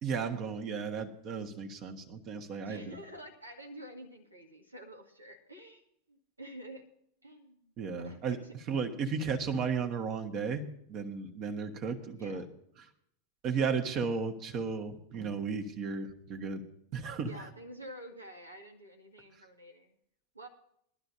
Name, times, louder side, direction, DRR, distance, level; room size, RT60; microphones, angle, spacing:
voice 1, 0.0-2.9 7.8-8.4 8.7-12.5 13.4-16.6 16.9-17.5, right 5 dB, 35° right, 5 dB, 1.5 m, -34 dB
voice 2, 2.6-5.8 6.1-6.8 7.2-8.5 12.2-12.4 17.2-20.0 20.3-20.5, right 1 dB, 80° right, 3 dB, 2.0 m, -49 dB
21.5 x 11.5 x 2.8 m, 0.72 s
figure-of-eight pair, 90°, 0 cm